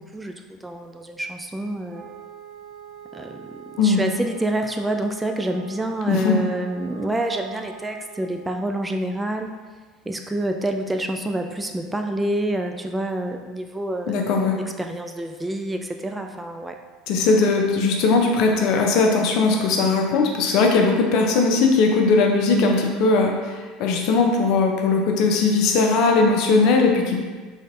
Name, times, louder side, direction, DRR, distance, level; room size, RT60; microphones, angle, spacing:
voice 1, 0.0-2.1 3.1-9.5 10.1-14.2 14.8-16.8, right 1 dB, 10° right, 5 dB, 0.3 m, -27 dB
Wind instrument woodwind instrument, 1.9-8.5, right 8 dB, 50° right, 0.6 m, -43 dB
voice 2, 6.1-6.4 14.1-14.6 17.1-27.2, left 3 dB, 60° left, 2 dB, 0.6 m, -19 dB
3.9 x 3.3 x 2.6 m, 1.4 s
hypercardioid pair, 75°, 0 cm